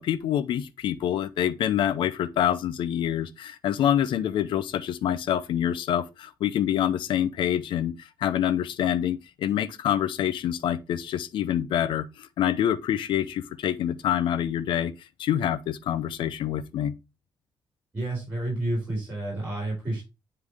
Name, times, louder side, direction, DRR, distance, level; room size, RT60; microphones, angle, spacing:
voice 1, 0.0-14.9 15.2-16.9, left 10 dB, 75° left, 0.6 m, -26 dB
voice 2, 17.9-20.0, right 1 dB, 20° right, 4.5 m, -30 dB
9.6 x 3.4 x 3.4 m
cardioid pair, 145°, 8 cm